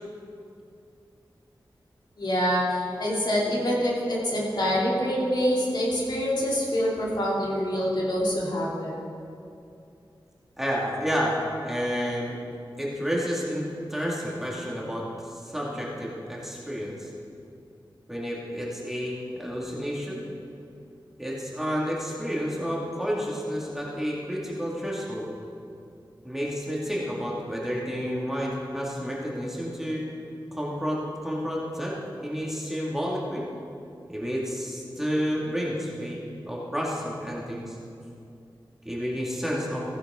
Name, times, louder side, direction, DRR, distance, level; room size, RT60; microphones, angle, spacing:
voice 1, 2.2-9.0, equal, 60° left, -5 dB, 2.9 m, -26 dB
voice 2, 10.6-12.4 12.8-17.1 18.1-20.2 21.2-25.2 26.2-30.1 30.5-33.5 34.1-36.2 36.5-37.8 38.8-39.8, equal, 5° right, -5 dB, 2.2 m, -30 dB
15.5 x 10.5 x 3.8 m, 2.5 s
wide cardioid pair, 95°, 8 cm